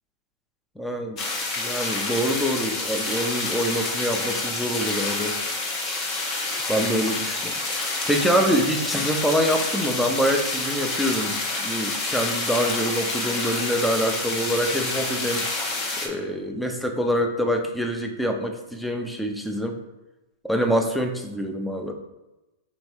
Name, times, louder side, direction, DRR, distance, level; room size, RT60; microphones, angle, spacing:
voice 1, 0.8-1.2 1.6-5.4 6.7-11.4 11.6-15.5 16.0-19.8 20.4-21.9, equal, ahead, 3 dB, 0.6 m, -25 dB
sound 1, 1.2-16.1, left 2 dB, 35° left, 1.0 m, -28 dB
3.6 x 3.2 x 4.1 m, 1.0 s
hypercardioid pair, 125°, 0 cm